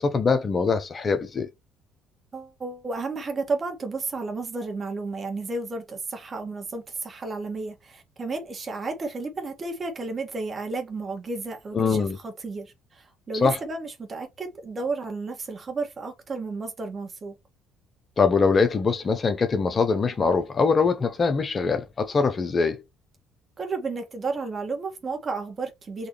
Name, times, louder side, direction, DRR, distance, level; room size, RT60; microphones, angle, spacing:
voice 1, 0.0-1.5 11.7-12.2 13.3-13.6 18.2-22.8, left 4 dB, 40° left, 1.0 m, -23 dB
voice 2, 2.3-12.0 12.2-17.3 23.6-26.1, right 3 dB, 40° right, 2.0 m, -32 dB
4.2 x 3.3 x 3.2 m
supercardioid pair, 65°, 0 cm